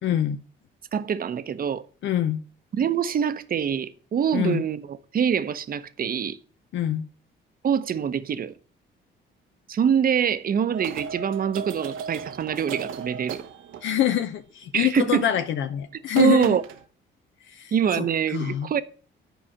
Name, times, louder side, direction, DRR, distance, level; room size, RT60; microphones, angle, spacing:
voice 1, 0.0-0.4 2.0-2.4 4.3-4.6 6.7-7.1 13.8-16.6 17.5-18.8, left 11 dB, 70° left, 0.7 m, -25 dB
voice 2, 0.9-1.8 2.7-6.4 7.6-8.5 9.7-13.4 14.7-15.2 16.2-16.6 17.7-18.8, right 8 dB, 45° right, 0.8 m, -24 dB
sound 1, 10.7-14.1 15.7-15.8 16.1-16.8, right 7 dB, 85° right, 0.9 m, -36 dB
10.0 x 4.8 x 7.4 m
cardioid pair, 90°, 20 cm